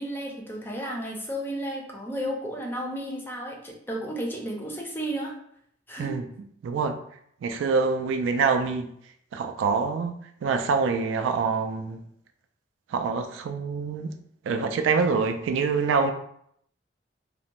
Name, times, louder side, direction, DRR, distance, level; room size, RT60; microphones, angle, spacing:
voice 1, 0.0-5.3 5.9-6.1, right 1 dB, 10° left, -1 dB, 0.4 m, -33 dB
voice 2, 6.6-7.0 7.4-8.9 9.3-10.1 10.4-12.0 12.9-14.1 14.5-16.1, right 5 dB, 90° right, 7 dB, 0.3 m, -25 dB
2.5 x 2.1 x 2.8 m, 0.70 s
head